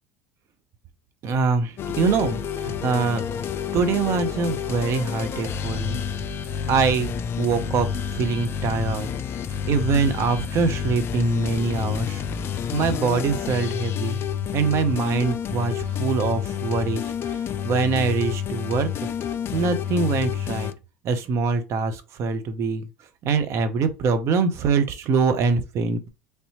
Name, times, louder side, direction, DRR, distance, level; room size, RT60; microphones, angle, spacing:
voice 1, 1.2-3.2 3.7-6.0 6.7-7.1 7.4-7.9 8.1-9.1 9.7-12.2 12.7-14.2 14.5-17.0 17.6-18.9 19.5-20.7 21.0-22.9 23.2-26.1, right 4 dB, 45° right, 0.6 m, -23 dB
sound 1, 1.8-20.7, left 8 dB, 35° left, 0.4 m, -29 dB
3.3 x 2.7 x 2.9 m
hypercardioid pair, 75°, 7 cm